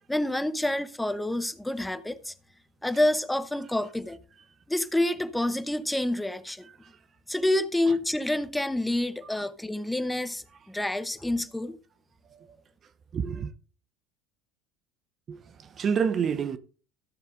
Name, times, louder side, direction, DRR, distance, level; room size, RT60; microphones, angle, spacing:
voice 1, 0.1-2.3 2.8-4.2 4.7-6.7 7.3-11.8, left 1 dB, 5° left, 0.9 m, -28 dB
voice 2, 13.1-13.5 15.3-16.6, right 6 dB, 40° right, 0.8 m, -28 dB
14.5 x 6.8 x 3.8 m
hypercardioid pair, 85°, 0 cm